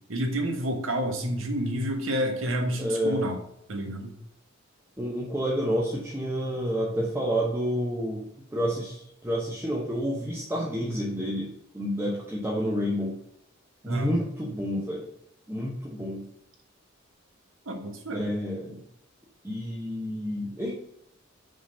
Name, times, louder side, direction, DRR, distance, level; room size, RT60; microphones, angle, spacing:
voice 1, 0.1-3.4 3.7-4.1 13.8-14.2 17.7-18.2, equal, 75° right, 3 dB, 1.3 m, -29 dB
voice 2, 2.8-3.3 5.0-13.1 13.8-15.0 15.5-16.3 18.1-18.8 19.4-20.7, equal, 10° right, -4 dB, 0.9 m, -29 dB
5.1 x 3.8 x 5.5 m, 0.77 s
head